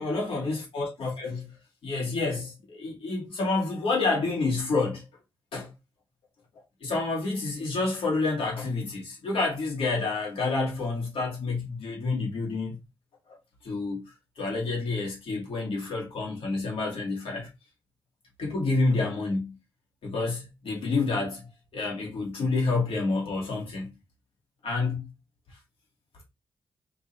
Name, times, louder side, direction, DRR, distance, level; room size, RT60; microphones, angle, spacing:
voice 1, 0.0-1.5 1.8-5.0 5.5-5.7 6.8-12.8 13.6-14.0 14.4-17.5 18.4-19.6 20.0-21.5 21.7-24.0 24.6-25.1, left 3 dB, 85° left, 2.3 m, -28 dB
4.5 x 2.8 x 4.3 m
cardioid pair, 80°, 9 cm